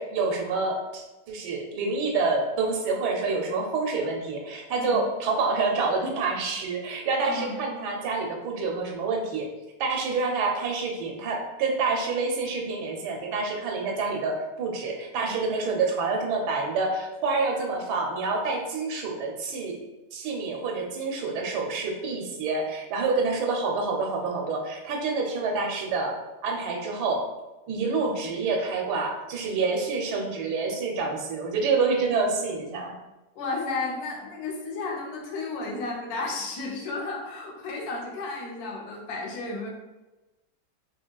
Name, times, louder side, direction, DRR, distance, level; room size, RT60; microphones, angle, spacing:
voice 1, 0.0-9.5 9.8-19.8 20.1-27.2 27.7-33.0, right 4 dB, 85° right, 1 dB, 1.2 m, -27 dB
voice 2, 7.2-7.5 33.4-39.7, left 3 dB, 70° left, -1 dB, 1.1 m, -33 dB
2.8 x 2.8 x 2.2 m, 1.1 s
omnidirectional pair, 1.7 m